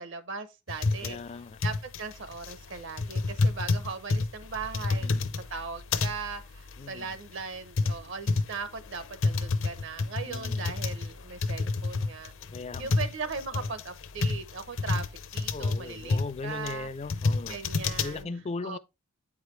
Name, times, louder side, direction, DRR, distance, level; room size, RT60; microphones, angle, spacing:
voice 1, 0.0-1.2 1.6-5.1 5.5-12.3 12.8-15.1 15.3-16.9 17.5-18.3 18.6-18.8, right 5 dB, 55° right, 0.7 m, -38 dB
sound 1, 0.7-18.2, left 3 dB, 60° left, 0.6 m, -30 dB
voice 2, 1.0-1.6 5.0-5.3 6.8-7.1 10.2-10.6 12.5-13.0 13.5-13.7 15.5-17.6 18.0-18.8, left 3 dB, 30° left, 0.3 m, -38 dB
8.7 x 4.8 x 3.1 m
head